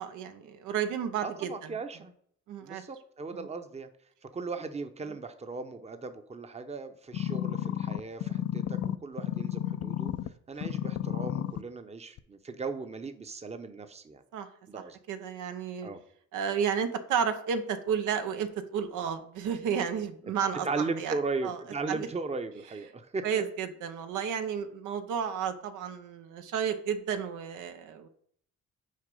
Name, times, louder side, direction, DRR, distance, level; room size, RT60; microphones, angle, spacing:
voice 1, 0.0-1.5 2.5-2.8 3.3-3.5 14.3-14.5 15.1-15.9 16.3-20.7 21.0-21.2 21.4-21.6 21.9-22.1 23.2-28.1, right 7 dB, 85° right, 8 dB, 0.8 m, -32 dB
voice 2, 1.2-2.1 2.6-3.9 4.3-10.1 10.5-14.2 14.7-15.0 15.8-16.0 20.6-23.3, right 4 dB, 20° right, 8 dB, 0.7 m, -37 dB
sound 1, 7.1-10.3 10.6-11.6 12.2-12.3, left 11 dB, 55° left, 0.4 m, -32 dB
6.5 x 4.6 x 5.3 m, 0.63 s
cardioid pair, 90°, 30 cm